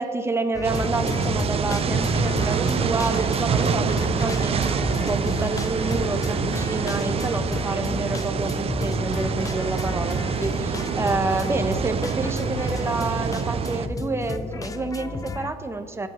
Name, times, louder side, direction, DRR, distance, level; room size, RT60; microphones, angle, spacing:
voice 1, 0.0-16.1, right 3 dB, 15° right, 8 dB, 0.9 m, -28 dB
sound 1, 0.5-15.5, left 4 dB, 20° left, 0.6 m, -31 dB
sound 2, 0.6-13.9, right 7 dB, 35° right, 0.5 m, -26 dB
23.0 x 8.3 x 3.1 m, 2.4 s
cardioid pair, 110°, 17 cm